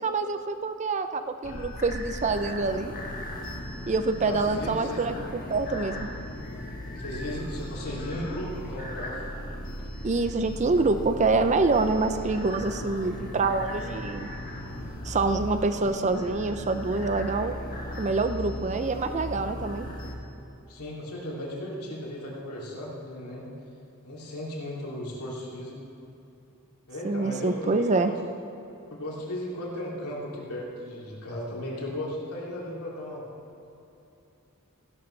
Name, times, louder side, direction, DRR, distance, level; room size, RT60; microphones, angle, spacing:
voice 1, 0.0-2.9 3.9-6.1 10.0-14.3 15.0-17.6 18.0-19.9 27.0-28.1, right 3 dB, 30° right, 9 dB, 0.5 m, -26 dB
sound 1, 1.4-20.2, equal, 40° left, 1.5 m, -37 dB
voice 2, 4.2-5.0 6.9-9.2 20.7-23.5 24.0-25.8 26.9-28.2 28.9-33.2, left 1 dB, 85° left, -4 dB, 2.9 m, -36 dB
16.0 x 11.5 x 3.3 m, 2.9 s
head